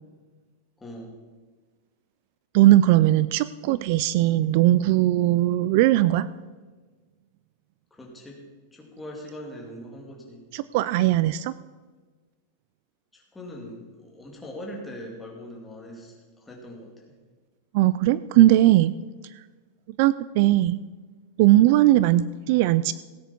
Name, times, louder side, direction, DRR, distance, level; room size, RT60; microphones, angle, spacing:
voice 1, 0.8-1.1 7.9-8.4 8.7-10.4 13.1-16.9, equal, 10° left, -1 dB, 2.7 m, -41 dB
voice 2, 2.5-6.3 10.5-11.5 17.7-18.9 20.0-20.8 21.4-22.9, right 15 dB, 45° right, 17 dB, 0.3 m, -19 dB
17.5 x 9.4 x 4.5 m, 1.4 s
supercardioid pair, 160°, 0 cm